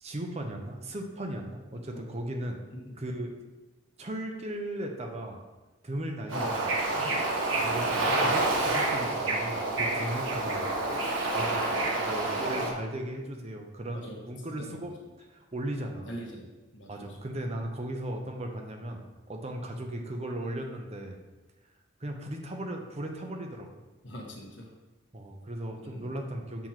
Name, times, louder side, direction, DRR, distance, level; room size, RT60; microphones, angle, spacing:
voice 1, 0.0-2.6 3.0-3.3 4.0-5.4 5.8-6.7 7.6-10.7 11.3-11.6 12.0-14.9 15.2-16.1 16.9-19.0 19.3-21.2 22.0-23.7 25.1-26.7, right 1 dB, 35° right, 3 dB, 0.7 m, -37 dB
voice 2, 1.7-2.0 2.7-3.0 6.3-6.7 7.5-8.4 13.9-14.3 14.6-14.8 16.0-17.2 24.0-24.7 25.8-26.1, equal, 65° left, -1 dB, 1.4 m, -43 dB
Bird / Ocean, 6.3-12.7, right 2 dB, 80° right, 1.2 m, -28 dB
7.0 x 3.0 x 5.7 m, 1.2 s
head